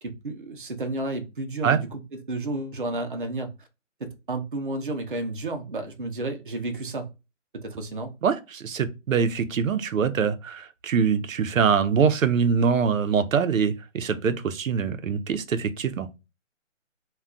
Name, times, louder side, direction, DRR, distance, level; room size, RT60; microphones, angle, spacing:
voice 1, 0.0-3.5 4.0-7.1 7.6-8.1, right 2 dB, 40° right, 0.5 m, -32 dB
voice 2, 8.2-16.2, right 6 dB, 90° right, 0.6 m, -24 dB
2.3 x 2.2 x 3.7 m
hypercardioid pair, 175°, 38 cm